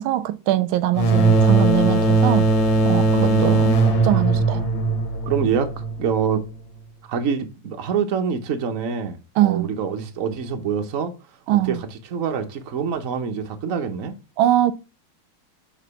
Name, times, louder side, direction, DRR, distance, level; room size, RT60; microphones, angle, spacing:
voice 1, 0.0-2.5 2.8-4.6 9.4-9.7 11.5-11.8 14.4-14.7, right 14 dB, 85° right, 1.4 m, -22 dB
sound 1, 0.9-6.4, right 3 dB, 70° left, 2.0 m, -19 dB
voice 2, 3.1-4.0 5.3-6.4 7.1-11.1 11.6-11.8 12.1-14.1, right 6 dB, 50° right, 1.1 m, -25 dB
7.3 x 3.9 x 5.6 m
omnidirectional pair, 2.2 m